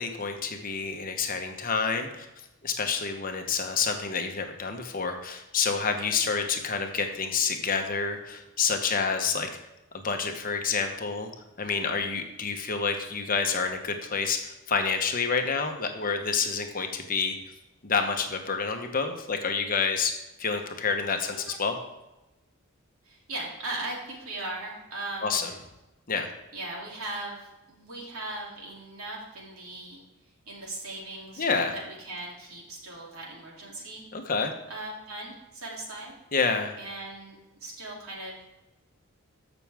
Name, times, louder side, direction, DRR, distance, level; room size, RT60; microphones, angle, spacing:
voice 1, 0.0-2.3 2.6-9.5 10.0-11.3 11.6-17.3 17.8-20.1 20.4-21.8 25.2-25.5 26.1-26.3 31.4-31.7 34.1-34.5 36.3-36.8, left 5 dB, 40° left, 4 dB, 1.0 m, -28 dB
voice 2, 23.0-25.4 26.5-30.0 30.5-31.4 31.7-34.0 34.7-36.2 36.8-38.4, right 2 dB, 85° right, -3 dB, 3.1 m, -38 dB
14.5 x 6.1 x 3.5 m, 0.96 s
head